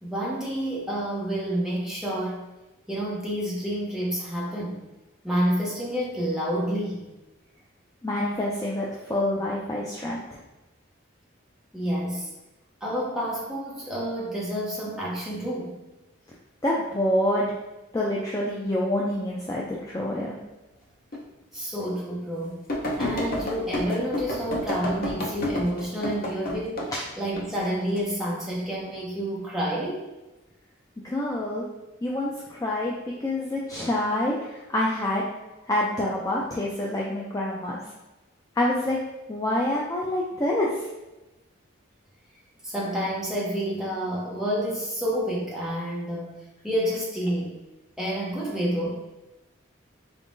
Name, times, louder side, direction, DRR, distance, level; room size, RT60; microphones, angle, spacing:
voice 1, 0.0-2.5 2.9-4.8 5.2-7.1 11.7-12.3 12.8-15.8 21.5-22.6 23.0-26.8 27.2-30.1 42.6-47.6 48.0-49.0, equal, ahead, -6 dB, 0.7 m, -29 dB
voice 2, 8.0-10.4 16.6-17.5 17.9-20.4 31.0-31.6 32.0-35.3 35.7-37.8 38.6-39.0 39.3-40.9, left 1 dB, 15° left, -4 dB, 0.3 m, -27 dB
sound 1, 21.1-21.2 21.8-21.9 22.7-26.9 27.4-28.0 28.6-29.0, left 1 dB, 45° left, 0.6 m, -30 dB
3.9 x 3.6 x 2.6 m, 1.0 s
head